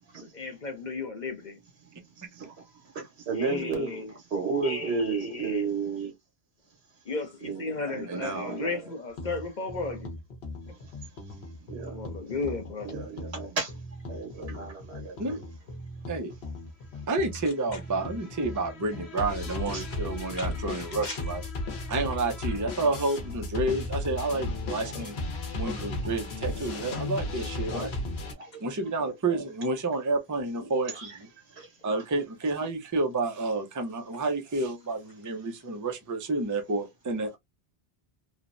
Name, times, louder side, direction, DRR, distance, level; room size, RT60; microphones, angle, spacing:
voice 1, 0.2-1.6 3.4-4.1 4.6-5.7 7.1-10.1 11.9-12.9 17.7-17.8 19.7-20.0 20.3-21.2 24.9-25.1 27.7-27.9 29.0-29.1, left 3 dB, 50° left, 0.7 m, -35 dB
voice 2, 2.9-3.9 4.3-6.1 7.4-7.6 7.9-8.8 11.7-12.0 12.8-13.7 14.1-15.5 19.5-19.8 25.6-26.2 28.4-28.5 30.9-31.2 31.6-32.0, right 4 dB, 80° right, 1.4 m, -33 dB
voice 3, 8.1-8.6 15.2-15.4 16.1-16.3 17.1-21.4 21.9-25.2 25.5-27.9 28.6-31.3 31.8-37.4, right 2 dB, 25° right, 0.4 m, -30 dB
sound 1, 9.2-28.3, left 2 dB, 75° left, 1.1 m, -36 dB
3.2 x 2.1 x 2.4 m
omnidirectional pair, 1.1 m